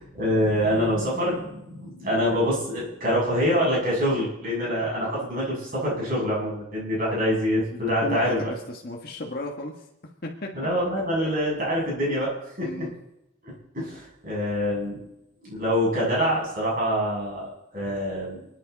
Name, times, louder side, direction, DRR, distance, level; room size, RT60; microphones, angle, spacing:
voice 1, 0.2-8.5 10.5-12.3 12.6-12.9 13.4-15.0 15.4-17.4 17.7-18.4, equal, 40° right, -5 dB, 7.6 m, -25 dB
voice 2, 7.7-9.9 10.2-10.5 11.2-11.3 12.6-12.9, left 1 dB, 45° left, 0 dB, 1.6 m, -34 dB
29.5 x 10.0 x 4.1 m, 0.88 s
head